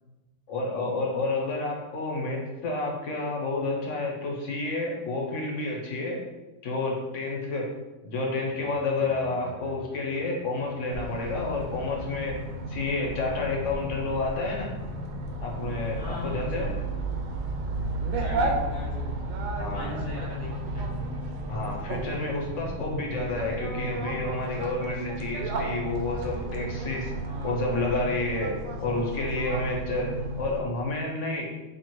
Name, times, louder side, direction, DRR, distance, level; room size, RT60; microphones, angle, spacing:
voice 1, 0.5-6.2 6.6-7.7 8.0-12.4 12.7-14.7 15.4-16.7 19.6-19.9 21.5-27.1 27.4-31.5, left 2 dB, 65° left, -1 dB, 1.1 m, -30 dB
sound 1, 8.4-24.5, left 1 dB, 40° right, 1.6 m, -43 dB
sound 2, 10.9-30.6, right 2 dB, 75° right, 1.0 m, -33 dB
voice 2, 16.0-16.8 18.2-21.1 27.2-27.7, left 1 dB, 20° left, -8 dB, 1.0 m, -40 dB
4.2 x 2.8 x 3.0 m, 1.1 s
omnidirectional pair, 1.4 m